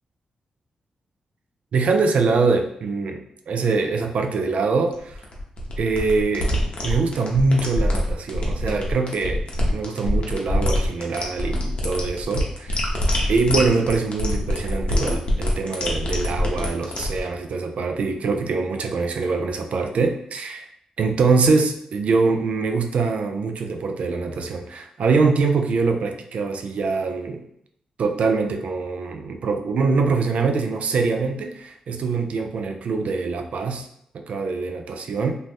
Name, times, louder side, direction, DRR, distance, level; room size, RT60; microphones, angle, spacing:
voice 1, 1.7-5.2 5.8-6.5 6.8-9.4 9.7-12.8 13.3-20.7 21.0-27.5 28.0-33.9 34.1-35.3, right 4 dB, 70° right, 5 dB, 0.3 m, -23 dB
sound 1, 4.9-17.2, left 1 dB, 50° left, 0.7 m, -24 dB
2.6 x 2.0 x 3.3 m, 0.71 s
cardioid pair, 70°, 2 cm